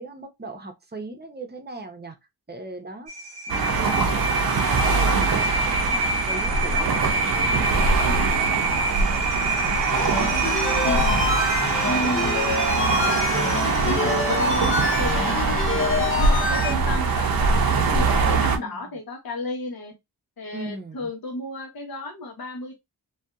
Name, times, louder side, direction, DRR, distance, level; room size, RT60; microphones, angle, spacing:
voice 1, 0.0-2.2 2.5-3.1 3.5-10.3 18.6-19.0 20.5-21.1, right 2 dB, 25° right, 0.8 m, -39 dB
sound 1, 3.1-15.1, right 3 dB, 90° right, 0.8 m, -28 dB
sound 2, 3.5-18.6, right 4 dB, 55° right, 0.7 m, -23 dB
sound 3, 9.9-16.7, left 4 dB, 35° left, 0.5 m, -26 dB
voice 2, 10.8-11.3 11.8-19.9 20.4-22.8, left 2 dB, 60° left, 1.0 m, -33 dB
2.6 x 2.4 x 2.3 m
cardioid pair, 50°, 41 cm